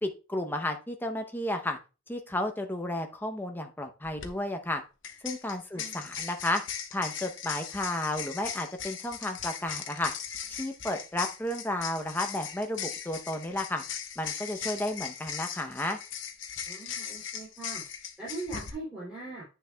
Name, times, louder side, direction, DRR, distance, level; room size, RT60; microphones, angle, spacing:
voice 1, 0.0-1.8 2.1-4.8 5.2-6.6 6.9-10.1 10.5-13.8 14.2-16.0, left 1 dB, 10° left, 4 dB, 0.7 m, -32 dB
sound 1, 4.0-4.3 5.0-18.7, left 8 dB, 60° left, 0.9 m, -39 dB
voice 2, 16.7-17.8 18.2-19.4, right 2 dB, 5° right, -8 dB, 2.7 m, -40 dB
9.6 x 6.5 x 2.2 m, 0.32 s
head